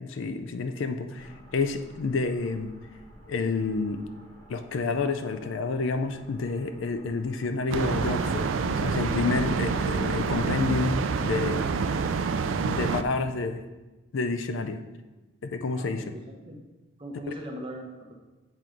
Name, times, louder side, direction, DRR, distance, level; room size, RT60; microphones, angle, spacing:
voice 1, 0.0-2.8 3.3-4.0 4.5-11.7 12.6-13.6 14.1-14.8 15.4-16.1, left 3 dB, 70° left, 8 dB, 0.4 m, -29 dB
sound 1, 1.1-11.1, equal, 15° left, 1.2 m, -50 dB
sound 2, 7.7-13.0, right 5 dB, 70° right, 0.4 m, -27 dB
voice 2, 15.7-16.6 17.0-18.1, equal, 25° right, 0 dB, 0.8 m, -39 dB
7.5 x 4.6 x 3.8 m, 1.1 s
head